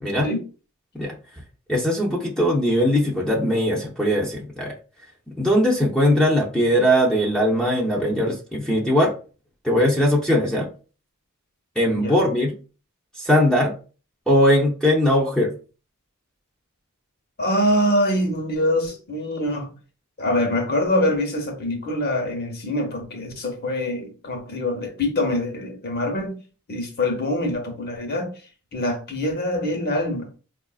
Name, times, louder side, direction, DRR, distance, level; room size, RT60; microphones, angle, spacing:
voice 1, 1.7-4.7 5.3-9.1 9.6-10.7 11.8-12.5 13.2-13.8 14.3-15.5, equal, 5° left, 0.6 m, -20 dB
voice 2, 11.9-12.3 17.4-19.7 20.2-26.4 26.7-28.3 28.7-30.3, left 1 dB, 45° left, 0.9 m, -24 dB
4.7 x 2.4 x 2.3 m
head